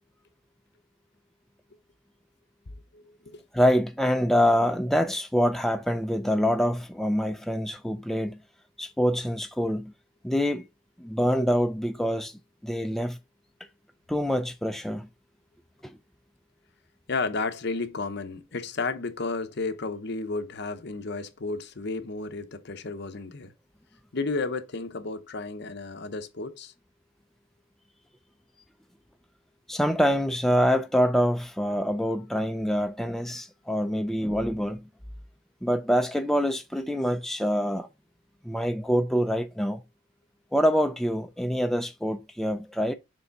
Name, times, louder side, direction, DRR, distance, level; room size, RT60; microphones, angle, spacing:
voice 1, 2.9-3.4 17.1-23.5 24.1-26.7, left 3 dB, 60° left, 0.8 m, -32 dB
voice 2, 3.5-8.4 8.8-9.9 10.2-10.6 11.0-12.3 12.6-13.2 14.1-15.1 15.8-15.9 29.7-34.8 35.6-37.9 38.4-39.8 40.5-42.9, equal, ahead, 0.4 m, -25 dB
6.9 x 3.4 x 4.0 m
head